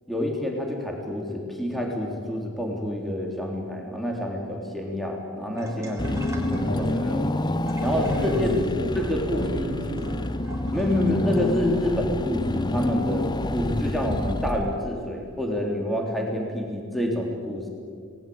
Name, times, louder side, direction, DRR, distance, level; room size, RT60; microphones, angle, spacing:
voice 1, 0.1-6.9 7.8-8.6 9.0-9.7 10.7-17.7, left 1 dB, ahead, 0 dB, 3.5 m, -28 dB
sound 1, 5.5-11.5, right 1 dB, 15° right, 4.3 m, -40 dB
Car / Engine, 6.0-15.2, left 1 dB, 20° left, 0.9 m, -28 dB
voice 2, 6.7-7.3 7.8-8.9 9.2-10.2 11.0-11.3, left 1 dB, 75° left, 1 dB, 7.6 m, -32 dB
27.0 x 20.0 x 8.8 m, 2.2 s
head